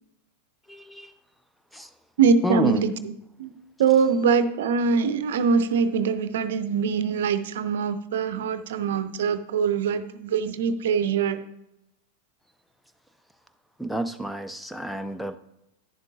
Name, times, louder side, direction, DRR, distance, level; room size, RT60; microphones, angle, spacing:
voice 1, 0.7-1.1 1.7-1.9 2.4-2.9 3.8-4.0 13.8-15.4, equal, ahead, 11 dB, 0.5 m, -29 dB
voice 2, 2.2-2.9 3.4-3.5 3.8-11.4, right 6 dB, 60° right, 12 dB, 0.6 m, -23 dB
11.0 x 10.0 x 2.5 m, 0.85 s
figure-of-eight pair, 90°, 0 cm